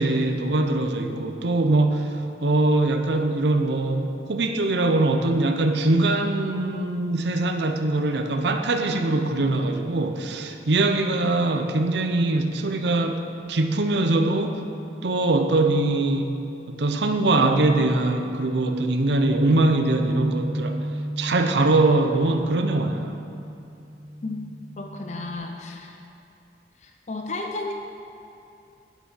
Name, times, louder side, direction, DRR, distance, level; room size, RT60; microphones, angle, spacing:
voice 1, 0.0-14.6 15.0-16.4 16.7-20.8 21.2-23.2, right 2 dB, 70° right, 6 dB, 0.7 m, -22 dB
Bass guitar, 19.1-25.4, equal, 90° right, 2.3 m, -31 dB
voice 2, 24.8-26.0 26.8-27.7, left 2 dB, 40° left, 3 dB, 0.5 m, -33 dB
10.5 x 6.0 x 5.6 m, 2.8 s
head